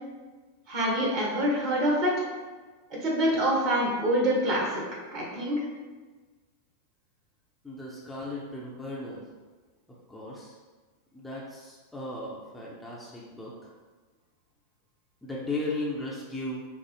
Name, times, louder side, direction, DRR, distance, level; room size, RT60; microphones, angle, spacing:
voice 1, 0.7-2.2 3.0-4.8 5.1-5.6, equal, 40° right, -3 dB, 1.1 m, -25 dB
voice 2, 7.6-9.2 10.1-10.6 11.1-13.5 15.2-16.7, left 2 dB, 5° left, -5 dB, 0.6 m, -36 dB
5.1 x 2.0 x 3.1 m, 1.3 s
figure-of-eight pair, 90°, 0 cm